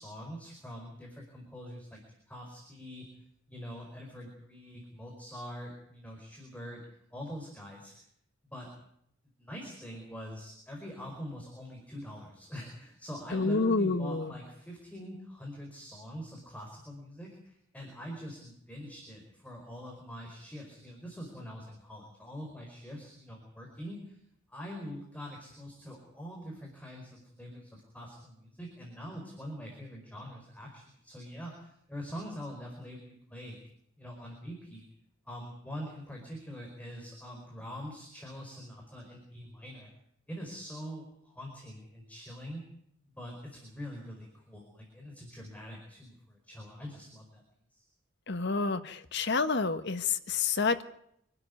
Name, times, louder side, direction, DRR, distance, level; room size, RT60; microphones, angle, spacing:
voice 1, 0.0-3.1 3.5-6.8 7.1-8.1 8.5-8.7 9.4-24.2 24.5-33.6 34.0-34.9 35.2-39.9 40.3-42.6 43.2-47.4 47.7-47.8, equal, 10° left, 0 dB, 4.9 m, -44 dB
voice 2, 13.3-14.3 48.3-50.8, left 4 dB, 60° left, 10 dB, 1.5 m, -29 dB
26.0 x 12.5 x 9.6 m, 0.73 s
head